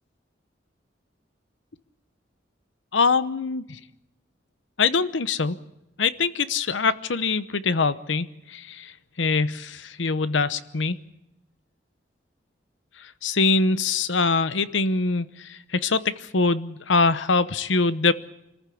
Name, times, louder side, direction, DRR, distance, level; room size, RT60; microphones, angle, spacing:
voice 1, 2.9-3.8 4.8-5.6 6.0-8.9 9.2-11.0 13.2-18.1, left 4 dB, 90° left, 14 dB, 0.9 m, -23 dB
26.5 x 14.5 x 8.5 m, 0.88 s
head